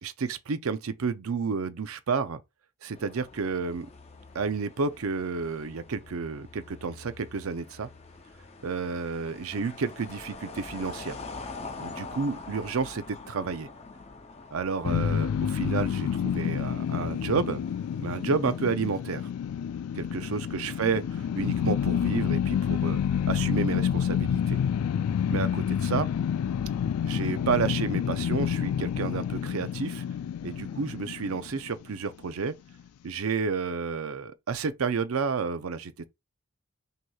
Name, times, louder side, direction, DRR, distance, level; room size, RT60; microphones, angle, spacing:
voice 1, 0.0-2.4 2.8-3.9 4.3-7.9 8.6-11.2 11.8-13.7 14.5-17.6 18.0-19.2 19.9-24.6 25.3-26.1 27.0-30.0 30.4-32.5 33.0-36.1, right 5 dB, 75° right, 0.5 m, -31 dB
sound 1, 2.9-18.6, left 3 dB, 30° left, 0.5 m, -45 dB
sound 2, 14.8-32.0, left 8 dB, 90° left, 0.3 m, -28 dB
6.1 x 2.9 x 2.3 m
head